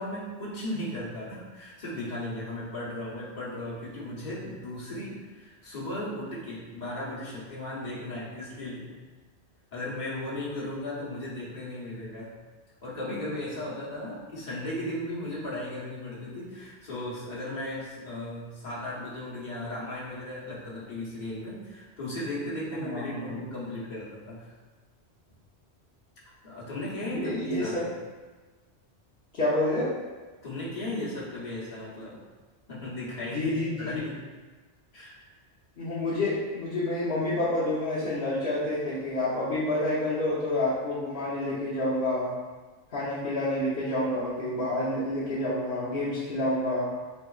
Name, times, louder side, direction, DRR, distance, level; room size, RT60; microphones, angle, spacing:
voice 1, 0.0-8.9 9.7-12.4 12.8-24.5 26.4-27.9 30.4-32.2 32.7-33.5 33.8-34.2 34.9-35.2, left 1 dB, 40° left, -7 dB, 1.2 m, -36 dB
voice 2, 22.8-23.4 27.0-27.9 29.3-29.9 33.3-34.1 35.8-42.3 42.9-46.9, left 1 dB, 60° left, -10 dB, 1.0 m, -28 dB
4.2 x 3.6 x 2.3 m, 1.3 s
omnidirectional pair, 1.2 m